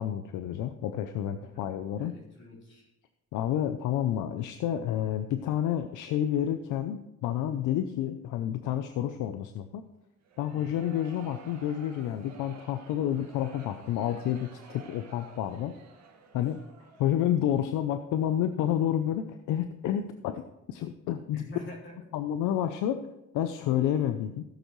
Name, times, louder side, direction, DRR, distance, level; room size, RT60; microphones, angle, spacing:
voice 1, 0.0-2.1 3.3-9.8 10.4-15.7 16.3-16.6 17.0-20.4 20.7-21.4 22.1-23.0 23.3-24.4, left 10 dB, 90° left, 9 dB, 0.6 m, -29 dB
voice 2, 1.4-2.9 10.5-10.7 17.0-17.1 21.3-22.0, left 1 dB, 40° left, -5 dB, 3.8 m, -47 dB
sound 1, 10.2-17.4, right 5 dB, 60° right, 1.8 m, -52 dB
15.0 x 8.0 x 3.1 m, 0.92 s
cardioid pair, 90°, 30 cm